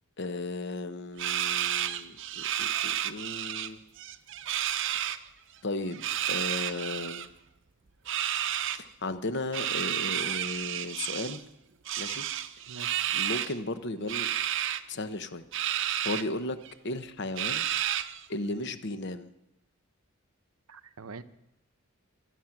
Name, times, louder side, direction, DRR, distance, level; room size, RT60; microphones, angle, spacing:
voice 1, 0.2-3.8 5.0-5.2 5.6-7.3 8.7-11.4 12.0-12.2 13.1-14.3 14.9-16.6 16.8-17.7 18.3-19.3, left 2 dB, 55° left, 10 dB, 1.0 m, -35 dB
sound 1, 1.2-3.7 4.0-5.2 5.9-7.3 8.1-8.8 9.5-11.4 11.9-13.5 14.1-14.8 15.5-16.2 16.7-16.8 17.4-18.2, right 11 dB, 55° right, 0.7 m, -31 dB
voice 2, 12.7-13.1 20.7-21.2, right 4 dB, 90° right, 11 dB, 0.8 m, -44 dB
24.0 x 9.3 x 6.0 m, 0.87 s
head